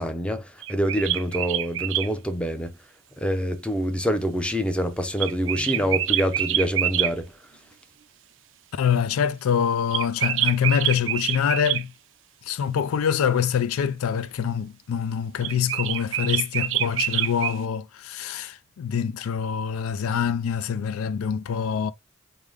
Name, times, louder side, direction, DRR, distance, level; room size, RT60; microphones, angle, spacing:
voice 1, 0.0-2.7 3.2-7.3, equal, 5° left, 0.4 m, -26 dB
sound 1, 0.6-2.1 5.2-7.1 9.9-11.8 15.4-17.6, right 12 dB, 60° right, 0.4 m, -26 dB
voice 2, 8.7-11.9 12.4-21.9, left 7 dB, 90° left, 0.4 m, -25 dB
4.8 x 2.1 x 3.5 m
head